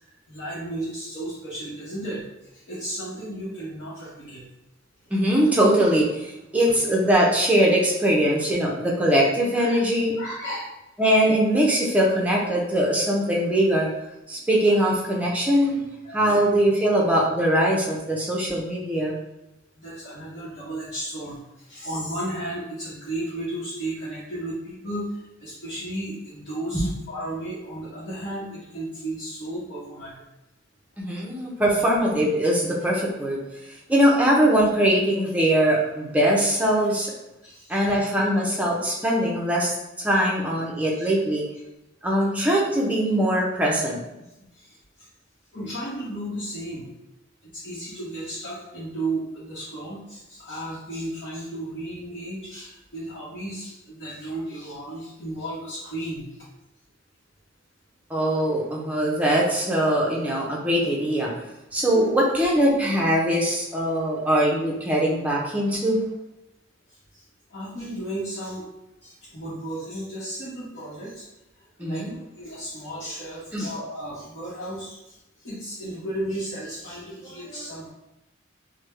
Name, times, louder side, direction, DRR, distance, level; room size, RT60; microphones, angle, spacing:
voice 1, 0.3-2.2 2.5-4.5 6.6-6.7 9.6-9.8 10.2-10.7 14.7-14.8 16.0-16.5 19.8-30.1 37.4-38.0 40.9-41.1 44.5-44.7 45.5-46.9 47.5-56.3 67.1-67.2 67.5-68.6 69.0-71.3 71.8-77.9, right 1 dB, 60° left, -10 dB, 0.9 m, -34 dB
voice 2, 5.1-10.1 11.0-13.9 14.3-15.8 16.1-19.2 26.7-26.9 31.0-33.4 33.9-37.1 37.7-41.4 42.0-44.0 58.1-61.3 61.7-66.0 71.8-72.1 73.5-73.7, right 1 dB, 5° right, -3 dB, 0.6 m, -21 dB
3.3 x 2.1 x 3.2 m, 0.93 s
head